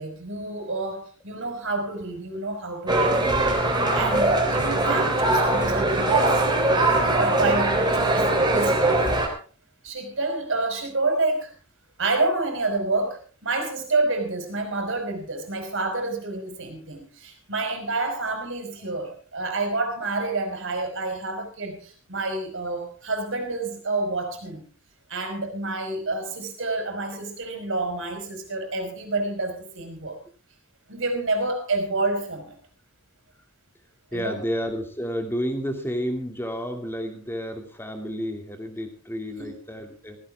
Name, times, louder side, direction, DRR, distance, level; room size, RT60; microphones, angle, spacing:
voice 1, 0.0-3.2 3.9-6.4 6.8-6.9 7.2-9.0 9.8-11.5 12.0-24.6 25.1-30.2 30.9-32.6 34.1-34.4 39.4-39.5, right 2 dB, 60° right, 5 dB, 5.1 m, -28 dB
sound 1, 2.9-9.3, right 2 dB, 20° right, 3.6 m, -21 dB
voice 2, 34.1-40.2, equal, 10° left, 5 dB, 2.6 m, -31 dB
16.5 x 16.5 x 3.6 m, 0.39 s
head